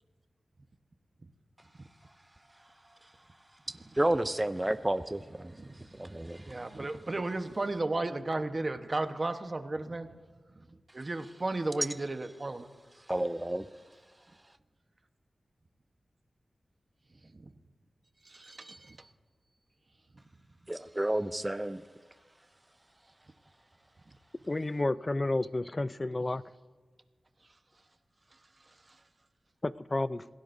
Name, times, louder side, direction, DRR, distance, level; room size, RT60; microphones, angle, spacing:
voice 1, 3.7-6.6 13.0-13.7 20.7-21.9, right 1 dB, 20° right, 11 dB, 0.5 m, -32 dB
voice 2, 5.5-6.1 6.4-10.2 10.5-12.7 17.2-17.5 18.2-19.1 28.3-29.0, right 2 dB, 45° right, 7 dB, 1.1 m, -35 dB
voice 3, 24.5-26.4 29.6-30.3, left 2 dB, 35° left, 15 dB, 0.5 m, -31 dB
26.5 x 16.5 x 2.7 m, 1.4 s
cardioid pair, 50°, 0 cm